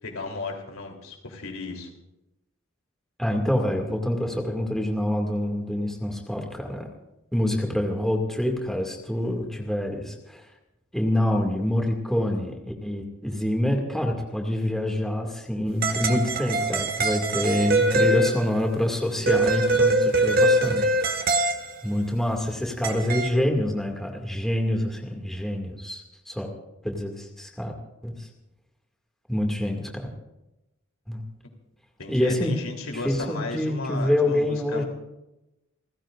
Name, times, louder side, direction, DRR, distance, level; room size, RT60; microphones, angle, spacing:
voice 1, 0.0-1.9 32.0-34.8, left 3 dB, 90° left, 2 dB, 3.5 m, -34 dB
voice 2, 3.2-6.9 7.3-10.4 10.9-12.5 12.8-21.3 21.8-26.5 26.8-27.7 28.0-28.3 29.3-30.1 31.1-31.2 32.1-32.5 33.0-34.8, left 1 dB, ahead, 1 dB, 2.2 m, -26 dB
sound 1, 15.8-18.7 19.3-21.7 22.8-23.3, right 2 dB, 45° right, 1.7 m, -23 dB
29.0 x 15.5 x 2.6 m, 0.93 s
head